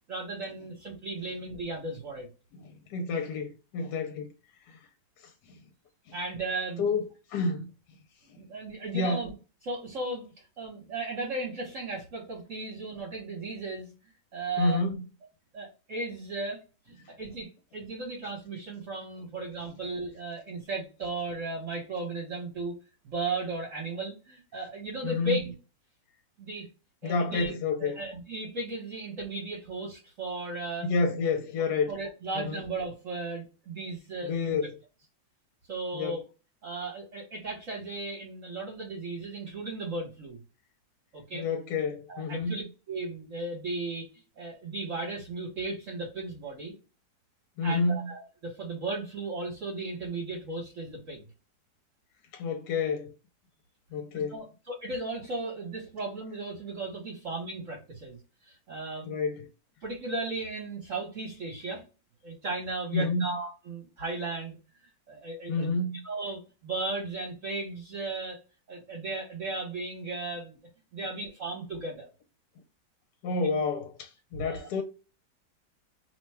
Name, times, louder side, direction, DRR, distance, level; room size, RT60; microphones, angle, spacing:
voice 1, 0.1-2.3 6.1-7.0 8.4-9.3 9.6-10.3 10.6-13.9 14.3-14.8 15.5-16.6 16.9-22.7 23.0-25.5 26.4-26.7 27.0-27.5 27.8-30.9 31.9-34.6 35.7-36.2 36.6-40.4 41.1-41.4 42.1-42.6 42.9-44.1 44.4-46.7 47.6-51.3 54.3-58.2 58.4-59.1 59.8-61.8 62.2-64.6 65.1-65.7 66.0-68.4 68.7-70.6 70.9-72.1 74.4-74.7, right 2 dB, 50° right, 1.3 m, -36 dB
voice 2, 2.5-4.3 4.7-4.8 5.2-5.6 6.1-6.2 6.8-7.0 7.3-7.7 8.3-8.4 8.9-9.3 14.6-15.0 25.0-25.4 27.0-28.0 30.8-31.9 32.3-32.6 34.2-34.8 35.9-36.2 41.3-42.7 47.6-48.1 52.3-53.1 53.9-54.4 59.0-59.5 62.9-63.3 65.5-66.0 73.2-74.8, left 3 dB, 80° left, 1.2 m, -29 dB
2.9 x 2.2 x 3.3 m
omnidirectional pair, 1.8 m